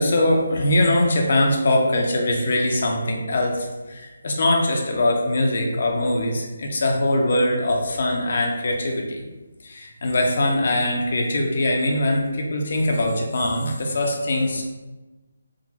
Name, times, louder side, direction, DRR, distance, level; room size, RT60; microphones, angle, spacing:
voice 1, 0.0-9.2 9.6-14.7, left 1 dB, 50° left, 1 dB, 0.7 m, -22 dB
3.7 x 2.1 x 4.1 m, 1.1 s
figure-of-eight pair, 150°, 0 cm